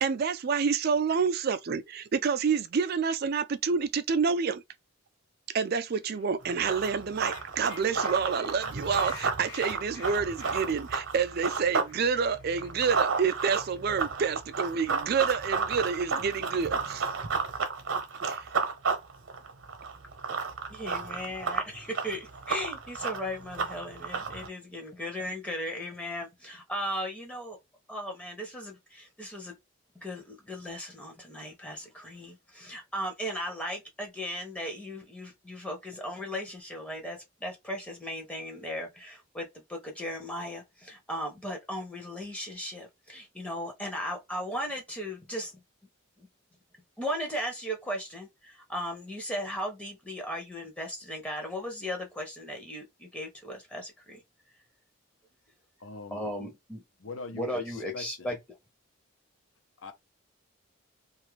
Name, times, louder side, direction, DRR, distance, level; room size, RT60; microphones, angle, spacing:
voice 1, 0.0-4.6 5.5-17.1 18.2-18.5, right 6 dB, 45° right, 0.3 m, -28 dB
sound 1, 6.1-6.3 6.7-11.0 11.3-11.4 11.6-14.4, left 4 dB, 50° left, 1.1 m, -50 dB
Run, 6.4-11.9 12.3-24.5, right 5 dB, 65° right, 0.9 m, -32 dB
voice 2, 20.7-27.6 27.9-29.5 30.0-45.5 46.2-46.3 47.0-54.2 56.1-56.8 57.3-58.4, equal, 5° left, 0.6 m, -37 dB
voice 3, 55.8-56.5 57.0-58.4 59.8-59.9, left 3 dB, 70° left, 0.7 m, -43 dB
2.6 x 2.4 x 3.2 m
head